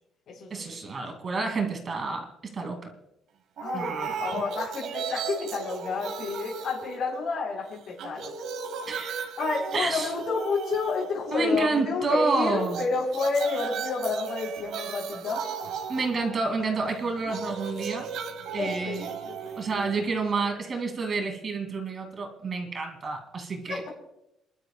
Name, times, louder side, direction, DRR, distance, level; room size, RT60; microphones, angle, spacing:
voice 1, 0.5-2.9 3.7-4.4 8.9-9.2 9.7-10.1 11.3-12.8 15.9-18.1 18.5-19.1 19.6-23.8, right 3 dB, 30° right, 3 dB, 2.5 m, -29 dB
voice 2, 3.6-8.3 9.4-15.5 18.6-19.6 23.7-23.9, left 4 dB, 55° left, -6 dB, 3.9 m, -30 dB
sound 1, 3.6-7.5 7.8-11.6 12.6-20.6, right 6 dB, 70° right, 1.2 m, -36 dB
28.0 x 12.0 x 2.3 m, 0.86 s
cardioid pair, 155°, 0 cm